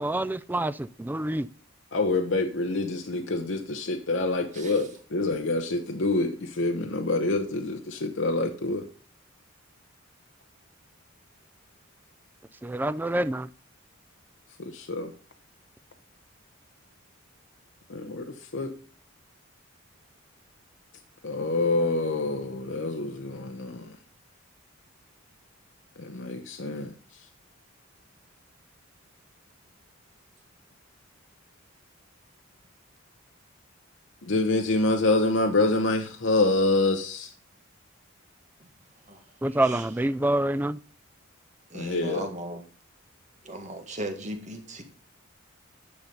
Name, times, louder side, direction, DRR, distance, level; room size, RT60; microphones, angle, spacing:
voice 1, 0.0-1.5 12.6-13.5 39.4-40.8, right 1 dB, 10° right, 0.3 m, -27 dB
voice 2, 1.9-8.8 14.6-15.1 17.9-18.2 18.5-18.7 21.2-23.9 26.0-26.9 34.2-37.3 41.7-42.3, left 2 dB, 65° left, 0.8 m, -26 dB
voice 3, 4.5-4.9 38.6-38.7 39.1-39.2 39.6-39.8 41.7-42.6 43.4-44.8, right 1 dB, 35° right, 1.7 m, -37 dB
9.7 x 5.8 x 5.2 m
head